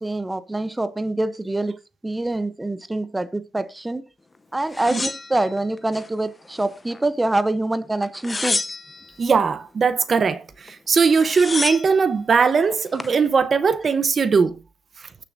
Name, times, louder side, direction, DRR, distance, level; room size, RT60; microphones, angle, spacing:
voice 1, 0.0-1.8 2.0-4.1 4.5-8.6, right 2 dB, 15° right, 0.7 m, -25 dB
sound 1, 4.7-6.1 6.5-7.3 8.0-9.1 10.7-10.8 11.0-12.0 12.7-13.2, left 3 dB, 20° left, 0.7 m, -29 dB
voice 2, 9.2-14.6, right 5 dB, 40° right, 0.9 m, -19 dB
20.0 x 6.8 x 2.6 m
cardioid pair, 90°, 0 cm